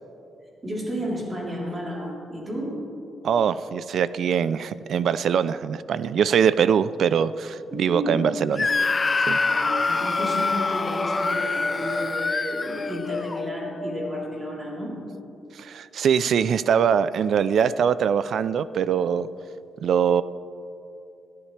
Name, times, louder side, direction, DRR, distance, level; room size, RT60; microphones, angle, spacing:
voice 1, 0.6-2.8 7.7-8.2 9.4-15.0, equal, 25° right, -4 dB, 3.6 m, -32 dB
voice 2, 3.2-8.7 9.3-9.4 15.6-19.3 19.8-20.2, right 7 dB, 60° right, 15 dB, 0.4 m, -22 dB
sound 1, 8.3-15.1, left 2 dB, 45° left, 1.1 m, -35 dB
Screaming, 8.6-13.4, left 4 dB, 25° left, 0.3 m, -25 dB
21.0 x 14.0 x 3.3 m, 2.8 s
wide cardioid pair, 155°, 0 cm